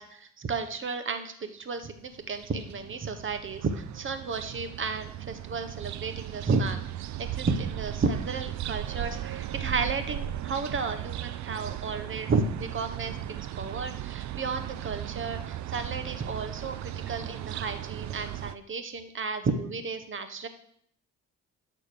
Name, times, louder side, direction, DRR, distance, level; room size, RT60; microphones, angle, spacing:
voice 1, 0.0-13.2 13.5-20.5, right 4 dB, 40° right, 9 dB, 1.3 m, -32 dB
sound 1, 2.1-18.5, right 12 dB, 70° right, 0.6 m, -37 dB
12.0 x 4.2 x 6.8 m, 0.67 s
cardioid pair, 90°, 30 cm